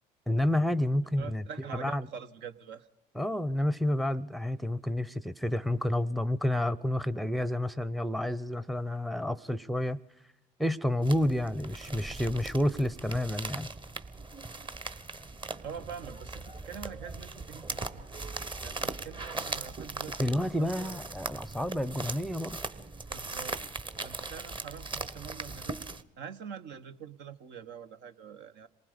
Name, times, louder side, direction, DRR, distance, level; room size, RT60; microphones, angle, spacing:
voice 1, 0.3-1.4 1.7-2.1 3.2-10.0 10.6-13.7 20.2-22.6, left 1 dB, ahead, 15 dB, 0.7 m, -29 dB
voice 2, 1.2-2.9 15.6-18.1 18.6-21.0 23.1-25.8 26.2-28.7, right 7 dB, 65° right, 9 dB, 1.1 m, -45 dB
sound 1, 11.0-26.0, right 3 dB, 25° right, 1.1 m, -39 dB
27.0 x 19.5 x 5.1 m, 0.78 s
hypercardioid pair, 70°, 20 cm